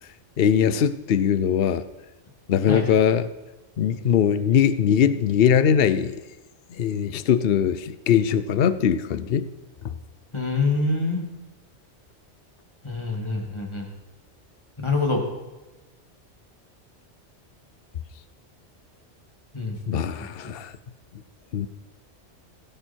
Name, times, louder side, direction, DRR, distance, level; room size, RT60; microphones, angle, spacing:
voice 1, 0.4-1.8 2.5-3.3 3.8-6.2 6.8-9.5 9.8-9.9 19.9-20.7 21.5-21.7, left 8 dB, 60° left, 13 dB, 0.9 m, -21 dB
voice 2, 10.3-11.2 12.8-13.9 14.8-15.2 19.5-20.5, left 3 dB, 25° left, 1 dB, 2.6 m, -26 dB
17.0 x 15.5 x 4.5 m, 1.1 s
omnidirectional pair, 1.2 m